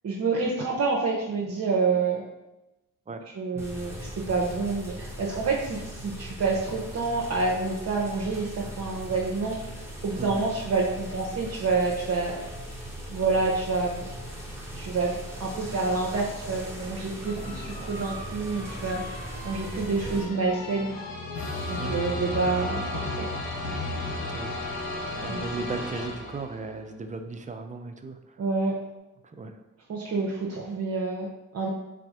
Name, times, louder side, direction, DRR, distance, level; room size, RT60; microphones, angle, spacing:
voice 1, 0.0-2.2 3.4-9.6 10.0-12.3 13.1-14.1 14.7-20.9 21.7-23.3 25.3-25.4 28.4-28.8 29.9-31.7, right 4 dB, 50° right, -2 dB, 0.8 m, -28 dB
sound 1, 3.6-20.2, equal, 5° right, 1.5 m, -39 dB
voice 2, 10.2-10.5 21.8-22.2 24.3-24.5 25.2-28.4 29.2-29.5, right 3 dB, 20° right, 6 dB, 0.5 m, -37 dB
sound 2, 17.2-26.7, left 2 dB, 70° left, 1.2 m, -34 dB
4.1 x 2.5 x 4.7 m, 1.0 s
cardioid pair, 70°, 34 cm